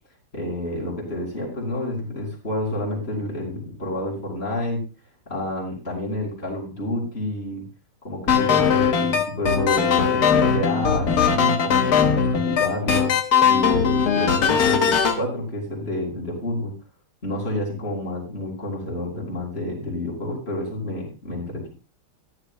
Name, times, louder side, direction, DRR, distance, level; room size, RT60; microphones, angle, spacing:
voice 1, 0.3-4.8 5.3-7.6 8.0-13.1 13.4-16.7 17.2-21.7, left 1 dB, 35° left, -4 dB, 4.2 m, -29 dB
sound 1, 8.3-15.2, left 7 dB, 65° left, 1.5 m, -19 dB
14.5 x 11.5 x 2.2 m, 0.32 s
omnidirectional pair, 1.9 m